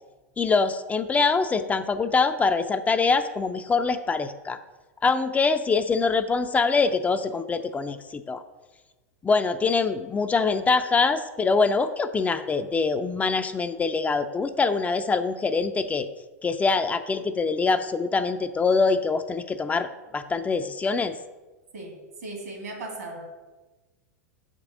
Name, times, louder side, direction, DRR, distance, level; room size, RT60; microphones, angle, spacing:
voice 1, 0.4-4.6 5.0-8.4 9.2-16.1 16.4-21.2, left 4 dB, 15° left, 9 dB, 0.5 m, -24 dB
voice 2, 21.7-23.3, right 2 dB, 80° right, 1 dB, 2.7 m, -37 dB
6.5 x 5.2 x 6.2 m, 1.2 s
hypercardioid pair, 105°, 9 cm